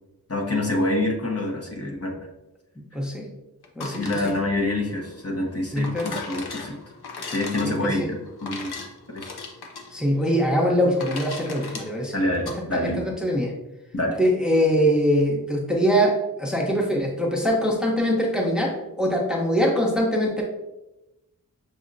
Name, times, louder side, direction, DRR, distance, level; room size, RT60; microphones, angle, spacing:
voice 1, 0.3-2.2 3.9-6.8 7.3-8.7 9.1-9.3 12.1-13.0 13.9-14.2, left 1 dB, 40° left, 0 dB, 0.9 m, -26 dB
voice 2, 2.9-3.3 3.8-4.2 5.7-6.1 7.6-8.1 9.9-12.2 12.7-13.5 14.2-20.4, equal, ahead, -1 dB, 0.8 m, -23 dB
sound 1, 3.6-12.6, left 4 dB, 75° left, 0.8 m, -38 dB
6.3 x 2.8 x 2.5 m, 0.97 s
wide cardioid pair, 70°, 39 cm